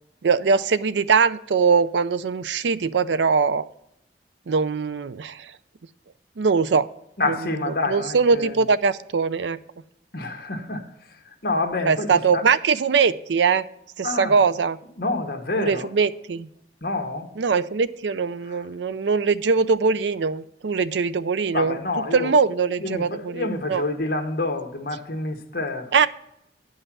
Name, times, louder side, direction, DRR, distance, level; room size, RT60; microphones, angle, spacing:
voice 1, 0.2-3.6 4.5-5.5 6.4-6.9 7.3-7.4 7.7-9.6 11.9-13.6 14.0-14.8 15.6-16.5 17.4-21.8 22.1-23.8 25.9-26.1, right 5 dB, 85° right, 15 dB, 0.5 m, -21 dB
voice 2, 7.2-8.6 10.1-10.8 11.4-12.5 14.0-14.3 15.0-15.9 16.8-17.3 18.5-18.6 21.5-22.4 22.8-25.9, left 2 dB, 55° left, 5 dB, 1.4 m, -28 dB
10.0 x 5.5 x 6.0 m, 0.77 s
head